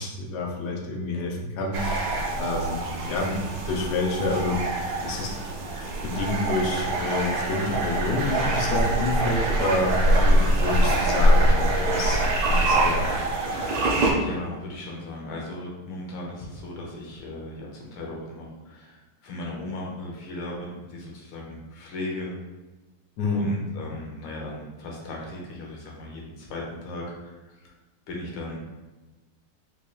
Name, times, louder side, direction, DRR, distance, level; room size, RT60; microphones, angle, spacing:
voice 1, 0.0-2.1 2.4-3.4 3.7-4.6 5.0-5.4 6.0-12.2 12.5-13.0 23.2-23.5, left 2 dB, 70° left, -1 dB, 1.0 m, -28 dB
sound 1, 1.7-14.1, right 1 dB, 70° right, 1.3 m, -24 dB
voice 2, 14.1-22.3 23.3-27.7 28.1-28.6, left 1 dB, 85° left, -2 dB, 1.6 m, -37 dB
4.1 x 3.1 x 2.2 m, 1.2 s
omnidirectional pair, 2.3 m